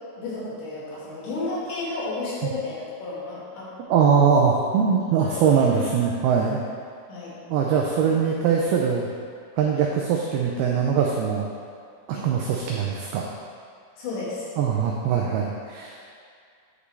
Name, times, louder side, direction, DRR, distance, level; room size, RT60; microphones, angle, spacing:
voice 1, 0.2-3.7 5.3-5.5 5.7-5.9 7.1-7.4 8.1-8.2 12.1-12.3 14.0-14.5, left 3 dB, 80° left, -8 dB, 4.0 m, -32 dB
voice 2, 3.9-6.6 7.5-9.1 9.6-11.5 12.1-13.3 14.6-16.0, right 6 dB, 90° right, -1 dB, 2.2 m, -22 dB
9.6 x 5.1 x 3.3 m, 2.3 s
omnidirectional pair, 5.0 m